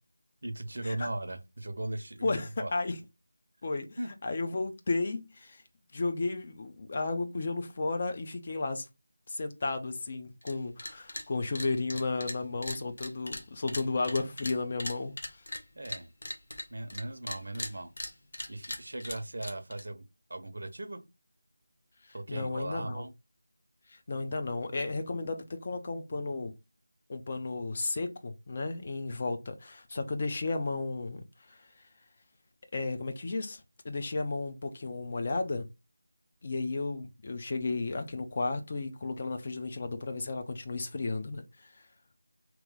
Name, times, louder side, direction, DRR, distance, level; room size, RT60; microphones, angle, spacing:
voice 1, 0.4-2.7 4.0-4.1 15.7-16.1 16.7-17.9 18.5-20.0 20.3-21.0 22.1-23.1, right 1 dB, 60° right, 0.7 m, -38 dB
voice 2, 2.2-3.0 3.6-5.6 5.9-8.8 9.3-15.4 22.3-23.1 23.9-26.5 27.1-31.7 32.7-35.7 36.4-41.7, left 3 dB, 35° left, 0.5 m, -33 dB
sound 1, 10.4-10.5 10.8-11.3 11.5-17.0 17.3-19.8, left 1 dB, 55° left, 0.9 m, -39 dB
3.0 x 3.0 x 3.6 m
figure-of-eight pair, 165°, 0 cm